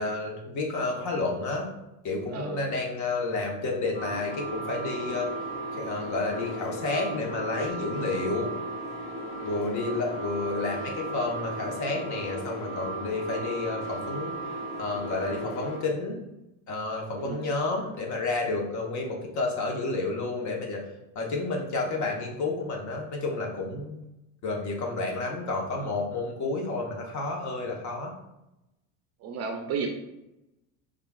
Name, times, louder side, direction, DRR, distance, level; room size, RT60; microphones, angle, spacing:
voice 1, 0.0-1.7 2.0-5.3 5.7-8.5 9.4-14.4 14.8-16.2 16.7-20.8 21.1-24.0 24.4-28.1, left 3 dB, 45° left, 0 dB, 1.0 m, -30 dB
voice 2, 2.3-2.6 17.2-17.5 29.2-29.9, right 5 dB, 40° right, 4 dB, 0.5 m, -33 dB
sound 1, 3.9-15.8, right 1 dB, 60° left, 1.4 m, -36 dB
4.9 x 2.4 x 2.3 m, 0.89 s
supercardioid pair, 110°, 41 cm